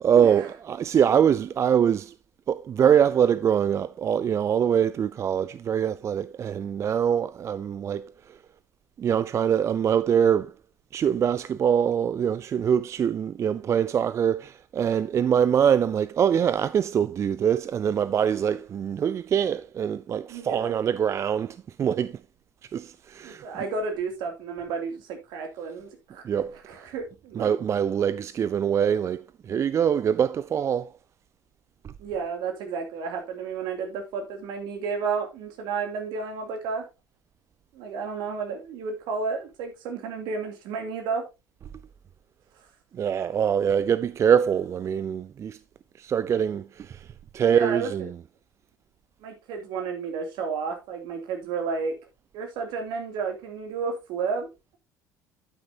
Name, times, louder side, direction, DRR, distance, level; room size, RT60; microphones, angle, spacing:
voice 1, 0.0-2.1 2.5-8.4 9.0-10.5 10.9-22.2 22.7-23.4 26.2-26.6 27.4-30.9 31.8-31.9 42.9-45.6 46.0-48.1, right 8 dB, 30° right, 0.4 m, -24 dB
voice 2, 20.3-20.7 23.2-26.2 26.7-27.5 32.0-36.9 37.7-41.3 47.5-47.9 49.2-52.0 52.3-54.8, right 5 dB, 55° right, 2.7 m, -32 dB
9.8 x 9.2 x 2.8 m
figure-of-eight pair, 60°, 9 cm